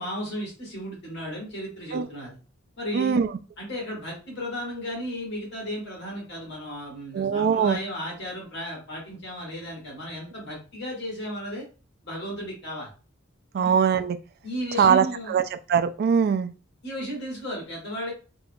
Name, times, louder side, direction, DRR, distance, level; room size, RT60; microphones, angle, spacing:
voice 1, 0.0-2.4 2.8-3.2 3.6-11.7 12.0-12.9 13.5-13.8 14.4-15.4 16.8-18.1, equal, 55° left, 1.7 m, -34 dB
voice 2, 2.9-3.3 7.1-7.8 13.5-14.2 14.8-15.4 15.7-16.5, right 7 dB, 50° right, 0.3 m, -21 dB
3.6 x 2.9 x 2.2 m
head